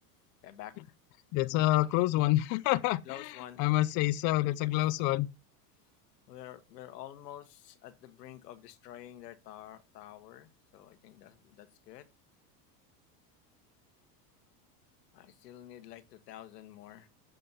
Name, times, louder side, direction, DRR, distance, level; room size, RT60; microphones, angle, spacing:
voice 1, 0.4-0.7 3.0-3.6 6.3-12.1 15.1-17.1, left 12 dB, 90° left, 1.3 m, -48 dB
voice 2, 1.3-3.0 3.6-5.3, left 17 dB, 40° left, 0.5 m, -27 dB
7.5 x 5.2 x 4.0 m
supercardioid pair, 115°, 48 cm